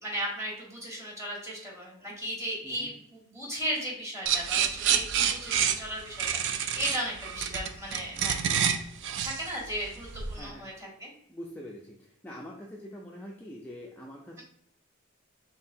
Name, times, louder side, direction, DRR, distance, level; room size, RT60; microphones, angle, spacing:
voice 1, 0.0-8.3 9.2-11.1, equal, 15° right, -3 dB, 1.4 m, -36 dB
sound 1, 4.3-10.4, right 8 dB, 60° right, 0.4 m, -28 dB
voice 2, 10.3-10.7 11.3-14.4, equal, 10° left, -2 dB, 0.4 m, -44 dB
4.6 x 3.4 x 2.6 m, 0.73 s
head